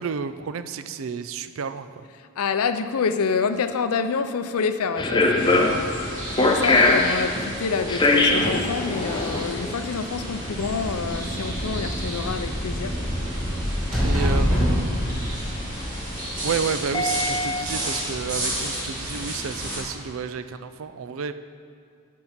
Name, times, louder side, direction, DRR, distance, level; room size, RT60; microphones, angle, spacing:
voice 1, 0.0-2.0 14.0-15.3 16.4-21.3, right 6 dB, 60° right, 11 dB, 0.4 m, -31 dB
voice 2, 2.4-12.9, left 5 dB, 80° left, 10 dB, 0.5 m, -27 dB
sound 1, 5.0-17.6, left 2 dB, 20° left, 0.6 m, -24 dB
sound 2, 5.4-19.8, right 1 dB, 35° right, 2.2 m, -33 dB
sound 3, 9.9-16.6, equal, ahead, 2.4 m, -27 dB
10.5 x 4.6 x 5.7 m, 2.5 s
head